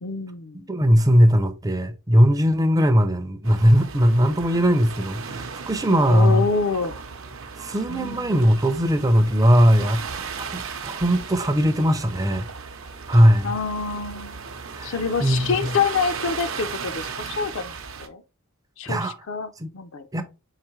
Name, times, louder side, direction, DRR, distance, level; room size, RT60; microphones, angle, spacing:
voice 1, 0.0-0.7 6.1-7.0 7.9-8.3 13.4-14.5 14.8-17.7 18.0-18.2 18.8-20.1, left 5 dB, 60° left, 0.5 m, -27 dB
voice 2, 0.7-6.4 7.6-10.0 10.4-12.5 13.1-13.5 14.7-15.0 15.2-15.7 18.9-19.1 19.6-19.7 20.1-20.2, equal, 15° right, 0.5 m, -19 dB
sound 1, 3.4-18.1, right 5 dB, 65° right, 0.7 m, -36 dB
4.8 x 3.0 x 3.0 m
head